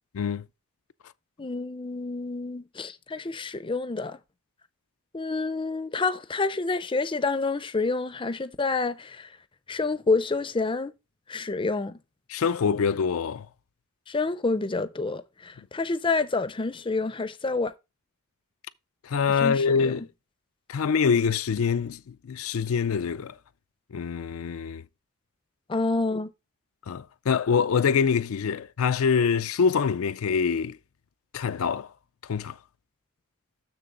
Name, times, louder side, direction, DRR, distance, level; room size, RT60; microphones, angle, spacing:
voice 1, 1.4-4.2 5.1-9.3 9.7-10.9 11.3-12.0 14.1-17.7 19.4-19.9 25.7-26.3, left 3 dB, 25° left, 0.5 m, -28 dB
voice 2, 12.3-13.5 19.0-20.0 20.7-23.4 23.9-24.8 26.9-30.8 31.3-31.9 32.3-32.6, left 6 dB, 70° left, 0.4 m, -25 dB
6.9 x 6.6 x 3.7 m
head